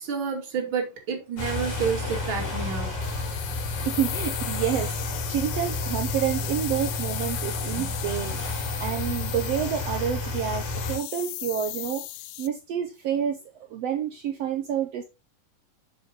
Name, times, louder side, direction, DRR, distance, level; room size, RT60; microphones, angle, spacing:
voice 1, 0.0-2.9 7.8-7.9, right 6 dB, 40° right, 2.8 m, -29 dB
sound 1, 1.4-11.0, left 2 dB, 45° left, 4.5 m, -31 dB
sound 2, 3.0-12.5, left 18 dB, 85° left, 2.1 m, -36 dB
voice 2, 3.8-12.1 12.4-13.4 13.7-15.0, right 9 dB, 75° right, 1.5 m, -29 dB
7.5 x 7.5 x 3.0 m
omnidirectional pair, 3.9 m